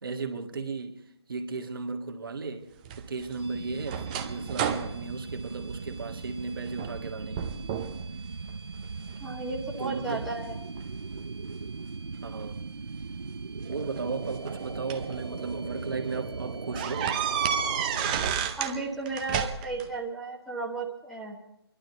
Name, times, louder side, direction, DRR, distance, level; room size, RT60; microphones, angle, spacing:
voice 1, 0.0-1.0 1.3-2.7 3.0-7.5 9.8-10.2 12.2-12.6 13.6-17.2, right 4 dB, 55° right, 1.7 m, -35 dB
sound 1, 2.9-6.3 6.7-7.1 7.4-8.0 8.5-9.2 9.8-11.2 12.4-12.5 13.7-15.1 15.7-15.8 16.1-16.2 16.8-18.8 19.1-19.9, right 8 dB, 20° right, 0.7 m, -32 dB
sound 2, 3.4-18.4, right 4 dB, 70° right, 0.7 m, -38 dB
voice 2, 9.2-10.5 18.6-21.4, right 3 dB, ahead, 1.1 m, -34 dB
27.5 x 12.0 x 4.0 m
figure-of-eight pair, 145°, 14 cm